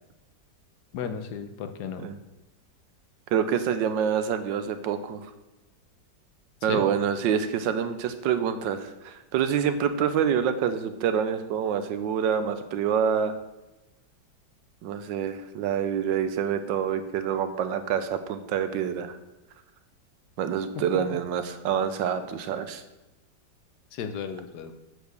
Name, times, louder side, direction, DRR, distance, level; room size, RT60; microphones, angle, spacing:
voice 1, 0.9-2.0 6.7-6.8 24.0-24.7, left 7 dB, 65° left, 7 dB, 1.3 m, -34 dB
voice 2, 3.3-5.3 6.6-13.3 14.8-19.2 20.4-22.8, right 8 dB, 85° right, 10 dB, 1.4 m, -27 dB
7.8 x 5.0 x 6.7 m, 1.0 s
omnidirectional pair, 2.0 m